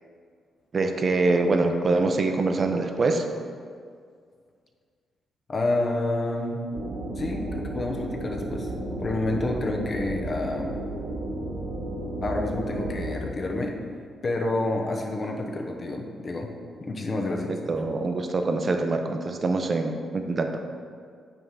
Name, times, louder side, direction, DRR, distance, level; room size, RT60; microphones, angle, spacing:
voice 1, 0.7-3.2 17.5-20.5, right 3 dB, 35° right, 5 dB, 0.6 m, -24 dB
voice 2, 5.5-6.7 7.2-8.7 9.0-10.8 12.2-13.8 14.2-16.5 16.8-17.6, left 2 dB, 30° left, 1 dB, 0.8 m, -29 dB
sound 1, 6.7-13.1, right 1 dB, 85° right, 1.7 m, -33 dB
9.1 x 3.7 x 5.6 m, 2.1 s
cardioid pair, 140°, 0 cm